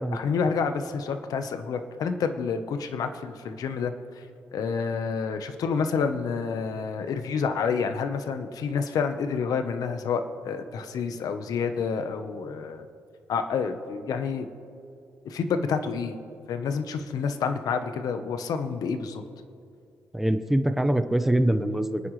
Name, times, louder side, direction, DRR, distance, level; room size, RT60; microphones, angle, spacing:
voice 1, 0.1-4.2 4.5-12.9 13.3-14.5 15.2-16.1 16.5-19.2, left 5 dB, 65° left, 8 dB, 1.1 m, -29 dB
voice 2, 20.1-22.0, right 1 dB, 5° right, 9 dB, 0.8 m, -24 dB
29.0 x 9.7 x 3.3 m, 2.4 s
cardioid pair, 110°, 7 cm